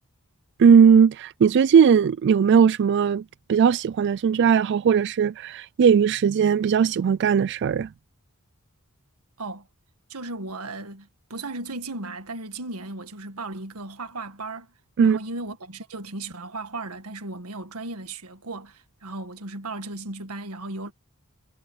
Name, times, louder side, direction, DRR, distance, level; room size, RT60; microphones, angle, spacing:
voice 1, 0.6-3.2 3.5-7.9 15.0-15.2, right 7 dB, 55° right, 0.3 m, -18 dB
voice 2, 10.1-14.7 15.0-20.9, right 2 dB, 85° right, 1.8 m, -36 dB
head